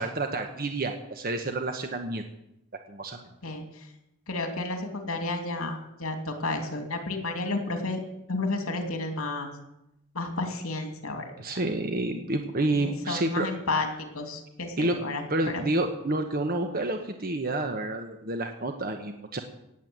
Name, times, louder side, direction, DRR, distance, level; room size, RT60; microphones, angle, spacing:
voice 1, 0.0-2.2 2.9-3.2 11.4-13.5 14.8-15.0 15.3-19.4, right 2 dB, 45° right, 5 dB, 1.1 m, -29 dB
voice 2, 3.4-3.9 4.3-8.0 8.3-9.5 10.1-11.3 12.7-13.9 14.1-15.6, left 2 dB, 75° left, 5 dB, 2.8 m, -31 dB
18.0 x 8.0 x 8.0 m, 0.86 s
head